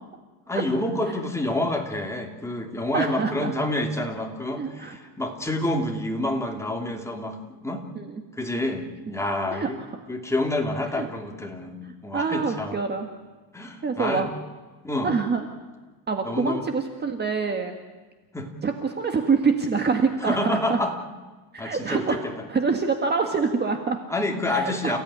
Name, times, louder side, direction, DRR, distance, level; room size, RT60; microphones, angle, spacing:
voice 1, 0.5-7.4 7.6-7.8 8.3-9.8 10.1-12.8 13.5-14.3 14.8-15.1 16.2-16.6 18.3-18.5 20.2-20.9 21.6-22.2 24.1-25.0, left 1 dB, 5° left, 1 dB, 2.8 m, -28 dB
voice 2, 2.9-3.5 4.6-5.0 8.0-8.2 9.5-9.7 10.9-11.1 11.8-13.1 13.8-14.3 15.0-15.5 16.1-17.8 18.6-20.8 21.5-22.2 22.5-24.0 24.5-25.0, right 5 dB, 20° right, 5 dB, 1.6 m, -25 dB
29.0 x 16.5 x 9.9 m, 1.3 s
cardioid pair, 155°, 46 cm